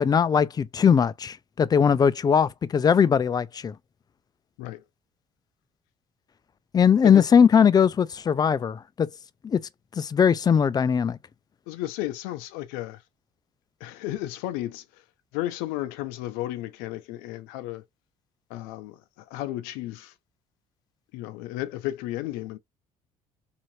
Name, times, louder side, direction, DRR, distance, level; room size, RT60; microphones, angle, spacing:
voice 1, 0.0-3.7 6.7-9.1 9.4-9.6 10.0-11.2, left 7 dB, 30° left, 0.3 m, -20 dB
voice 2, 11.7-13.0 13.8-15.0 15.3-17.8 18.5-20.1 21.1-22.6, left 15 dB, 85° left, 0.5 m, -33 dB
2.7 x 2.5 x 3.0 m
supercardioid pair, 85°, 14 cm